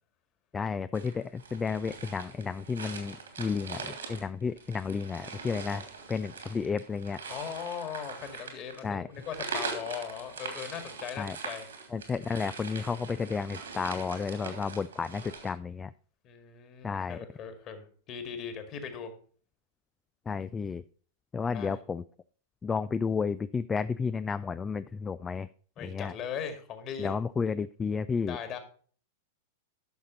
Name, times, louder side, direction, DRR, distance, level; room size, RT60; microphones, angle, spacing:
voice 1, 0.5-5.8 6.1-7.2 8.8-9.1 11.2-11.4 11.9-15.9 16.8-17.2 20.3-20.8 21.3-22.0 22.6-25.5 25.8-26.1 27.0-28.4, left 5 dB, 15° left, 14 dB, 0.3 m, -32 dB
sound 1, 0.9-15.5, right 4 dB, 75° right, 2.7 m, -42 dB
voice 2, 7.3-11.7 16.2-19.1 21.5-21.8 25.8-27.2 28.3-28.6, left 7 dB, 35° left, 8 dB, 2.0 m, -39 dB
11.5 x 6.5 x 4.0 m, 0.43 s
figure-of-eight pair, 95°, 0 cm